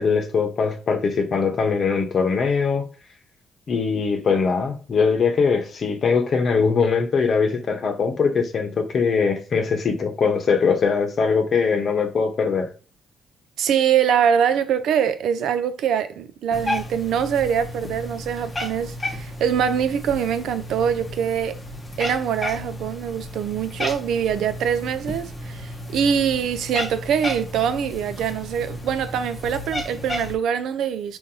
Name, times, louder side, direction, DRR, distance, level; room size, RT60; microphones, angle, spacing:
voice 1, 0.0-2.8 3.7-12.7, left 5 dB, 50° left, 0.8 m, -21 dB
voice 2, 13.6-21.5 22.0-31.2, right 8 dB, 80° right, 0.4 m, -23 dB
Cat, 16.5-30.4, left 1 dB, 20° left, 0.8 m, -33 dB
3.7 x 2.6 x 2.8 m
cardioid pair, 90°, 0 cm